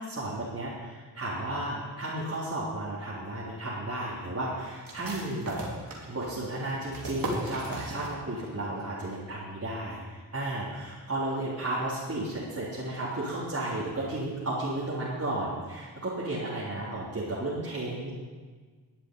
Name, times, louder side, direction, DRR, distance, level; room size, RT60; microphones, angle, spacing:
voice 1, 0.0-5.6 6.1-18.1, right 1 dB, 40° right, -9 dB, 3.6 m, -33 dB
sound 1, 4.8-8.5 8.8-8.9 9.3-9.8, right 1 dB, 60° right, 3.0 m, -38 dB
11.5 x 7.4 x 9.3 m, 1.5 s
cardioid pair, 70°, 39 cm